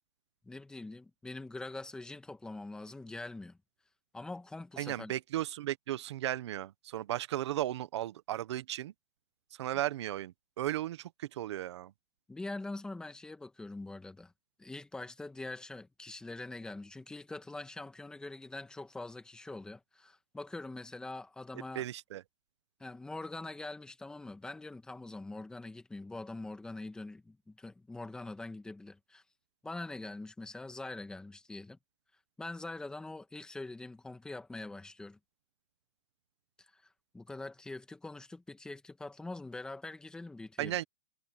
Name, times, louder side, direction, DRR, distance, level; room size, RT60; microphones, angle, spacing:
voice 1, 0.4-3.6 4.1-5.1 12.3-14.3 14.6-21.8 22.8-29.2 29.6-31.8 32.4-35.2 36.6-40.8, left 2 dB, 5° left, 1.6 m, -44 dB
voice 2, 4.8-8.9 9.5-11.9 21.7-22.2 40.6-40.8, right 13 dB, 55° right, 1.1 m, -35 dB
hypercardioid pair, 155°, 18 cm